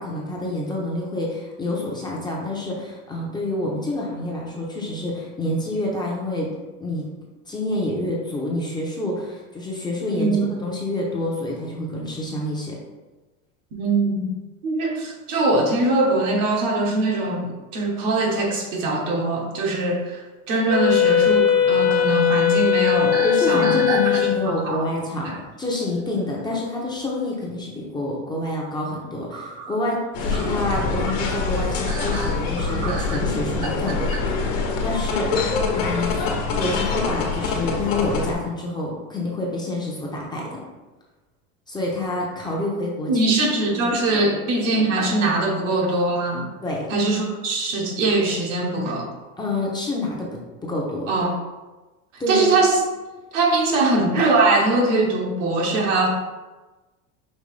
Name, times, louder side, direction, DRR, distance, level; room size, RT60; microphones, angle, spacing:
voice 1, 0.0-6.5 6.8-7.1 7.5-10.4 10.6-12.8 23.2-34.2 34.8-36.2 36.5-40.6 41.7-43.3 43.8-44.0 46.6-46.9 49.4-51.1 52.2-52.6 53.7-53.8, left 1 dB, 10° left, -3 dB, 0.7 m, -27 dB
voice 2, 10.2-10.5 13.7-14.3 14.6-23.8 24.4-24.8 25.2-25.3 43.1-46.5 46.9-49.1 51.1-51.3 52.3-52.8 53.3-56.1, right 2 dB, 70° right, 0 dB, 1.3 m, -22 dB
Wind instrument woodwind instrument, 20.7-24.5, left 9 dB, 45° left, 0.4 m, -19 dB
sound 1, 22.9-24.6 25.2-25.4 26.9-27.0 27.4-27.5 29.3-34.2, right 4 dB, 50° right, 0.7 m, -32 dB
sound 2, 30.1-38.3, left 4 dB, 70° left, 1.2 m, -25 dB
5.4 x 3.0 x 3.3 m, 1.2 s
supercardioid pair, 135°, 39 cm